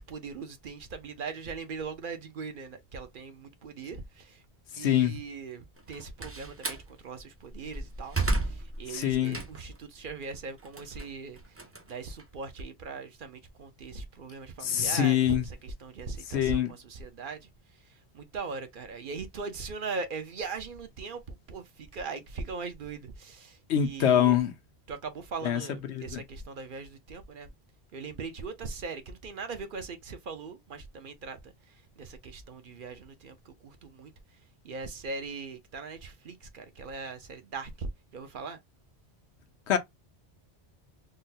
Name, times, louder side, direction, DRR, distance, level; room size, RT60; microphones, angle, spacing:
voice 1, 0.0-4.4 4.7-24.4 24.9-27.5 27.9-34.1 34.6-38.6, right 4 dB, 55° right, 0.8 m, -40 dB
voice 2, 4.8-5.2 8.9-9.4 14.6-15.4 16.3-16.7 23.7-24.5 25.4-25.6 25.9-26.2 39.7-39.8, left 10 dB, 85° left, 1.0 m, -24 dB
Slam, 5.8-6.9 7.4-9.8 10.2-12.6, right 2 dB, 20° right, 0.4 m, -33 dB
3.8 x 2.1 x 2.6 m
omnidirectional pair, 1.1 m